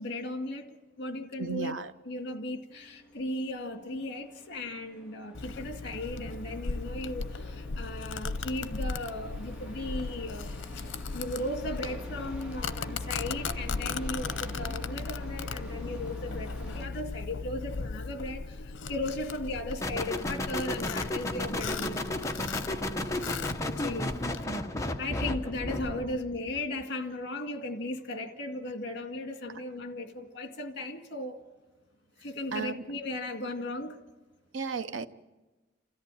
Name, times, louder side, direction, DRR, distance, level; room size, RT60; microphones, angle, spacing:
voice 1, 0.0-1.7 2.0-10.9 11.1-22.0 23.6-24.1 25.0-31.4 32.2-34.0, left 1 dB, 60° left, 2.1 m, -36 dB
voice 2, 1.4-1.9 32.5-32.8 34.5-35.1, right 4 dB, 85° right, 0.8 m, -34 dB
sound 1, 2.7-16.9, right 1 dB, 5° right, 3.3 m, -48 dB
Domestic sounds home sounds, 5.3-24.4, left 4 dB, 90° left, 0.7 m, -37 dB
sound 2, 19.8-26.1, left 1 dB, 15° left, 1.1 m, -33 dB
28.0 x 14.0 x 9.1 m
head